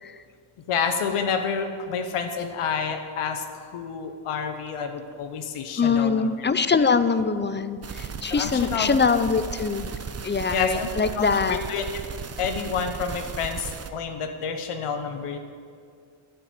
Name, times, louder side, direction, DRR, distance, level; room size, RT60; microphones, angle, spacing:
voice 1, 0.7-6.3 6.8-6.9 8.3-9.0 10.5-11.8 12.4-15.4, left 6 dB, 85° left, 6 dB, 1.0 m, -29 dB
voice 2, 5.8-9.9 10.2-11.6, left 5 dB, 25° left, 12 dB, 0.5 m, -23 dB
sound 1, 7.8-13.9, right 6 dB, 30° right, 0.7 m, -36 dB
9.8 x 6.9 x 9.2 m, 2.2 s
cardioid pair, 85°, 50 cm